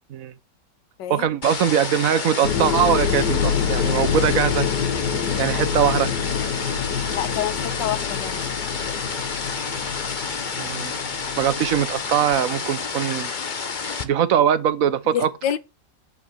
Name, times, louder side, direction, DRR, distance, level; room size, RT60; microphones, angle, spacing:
voice 1, 1.1-4.7 5.4-6.1 10.6-10.9 11.4-13.3 14.0-15.3, right 9 dB, 60° right, 1.1 m, -21 dB
sound 1, 1.4-14.0, left 5 dB, 35° left, 0.8 m, -30 dB
sound 2, 2.4-12.2, left 7 dB, 70° left, 2.1 m, -26 dB
voice 2, 7.1-8.6 15.1-15.6, left 10 dB, 90° left, 1.5 m, -28 dB
8.4 x 6.0 x 7.9 m
omnidirectional pair, 1.9 m